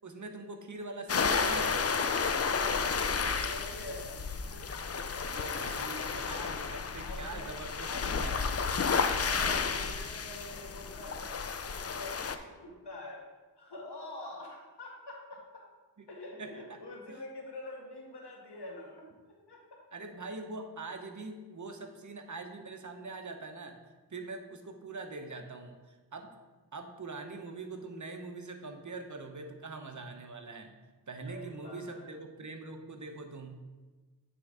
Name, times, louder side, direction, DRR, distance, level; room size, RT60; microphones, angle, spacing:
voice 1, 0.0-1.8 5.2-8.4 16.0-16.1 16.4-16.8 17.1-17.2 19.9-23.8 24.1-26.3 26.7-30.8 31.1-33.7, right 3 dB, 45° right, 4 dB, 0.9 m, -43 dB
sound 1, 1.1-12.4, left 5 dB, 35° left, 0.5 m, -32 dB
voice 2, 2.5-5.3 5.6-5.7 7.0-7.5 7.8-8.4 9.1-11.4 11.7-13.2 13.6-15.6 16.1-19.8 31.3-32.1, left 2 dB, 75° left, -1 dB, 1.7 m, -45 dB
8.8 x 3.6 x 4.9 m, 1.3 s
cardioid pair, 50°, 41 cm